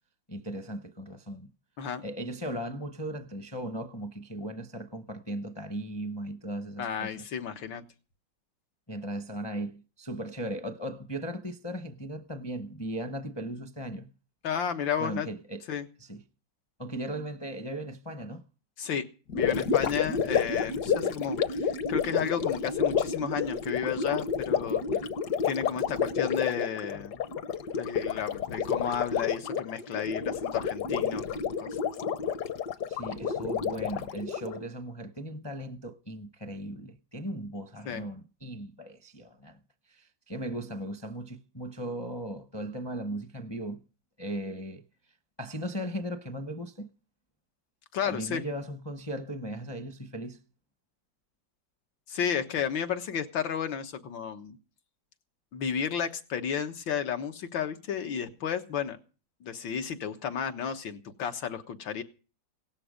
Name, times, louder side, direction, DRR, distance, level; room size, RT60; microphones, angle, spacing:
voice 1, 0.3-1.5 2.0-7.3 8.9-14.1 15.0-15.6 16.0-16.2 16.8-18.4 24.9-25.1 32.9-39.6 39.9-43.8 44.2-44.8 45.4-46.9 48.0-50.4, right 1 dB, 25° left, 0.5 m, -37 dB
voice 2, 6.8-7.8 14.4-15.3 15.7-15.9 18.8-19.0 19.3-24.8 25.4-27.2 27.7-31.8 37.9-38.1 47.9-48.4 52.1-54.6 55.5-59.0 59.4-62.0, left 8 dB, 90° left, 2.1 m, -32 dB
Gurgling, 19.3-34.6, left 6 dB, 65° left, 1.5 m, -30 dB
17.5 x 13.0 x 5.1 m
omnidirectional pair, 2.0 m